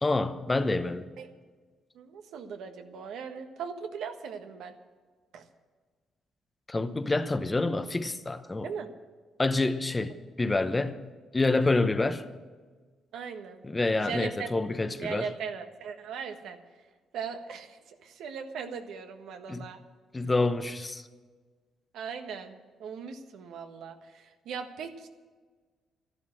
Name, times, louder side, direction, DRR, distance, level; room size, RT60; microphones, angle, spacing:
voice 1, 0.0-1.0 6.7-8.7 9.4-11.0 11.3-12.2 13.7-15.3 19.5-19.7 20.1-21.0, left 2 dB, 20° left, 0.9 m, -27 dB
voice 2, 1.9-4.7 5.3-5.4 8.6-8.9 13.1-13.6 14.0-14.5 15.0-16.6 17.1-19.8 21.9-25.1, right 6 dB, 80° right, 1.4 m, -39 dB
12.5 x 11.5 x 7.6 m
cardioid pair, 90°, 0 cm